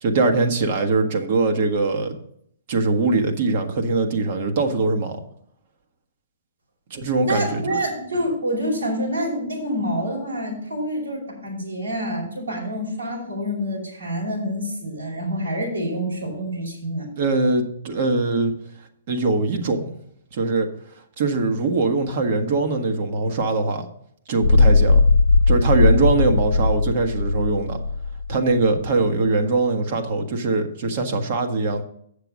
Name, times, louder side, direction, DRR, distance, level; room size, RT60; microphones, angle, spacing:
voice 1, 0.0-2.2 2.7-5.2 6.9-7.8 17.2-18.5 19.1-19.9 20.3-20.7 21.2-23.9 24.3-25.0 25.5-27.8 28.3-31.8, right 3 dB, 50° right, 5 dB, 1.4 m, -22 dB
voice 2, 7.2-17.1, equal, 85° right, -2 dB, 4.9 m, -27 dB
sound 1, 24.4-28.6, left 3 dB, 80° left, 0.5 m, -18 dB
7.9 x 6.8 x 6.2 m, 0.70 s
hypercardioid pair, 125°, 0 cm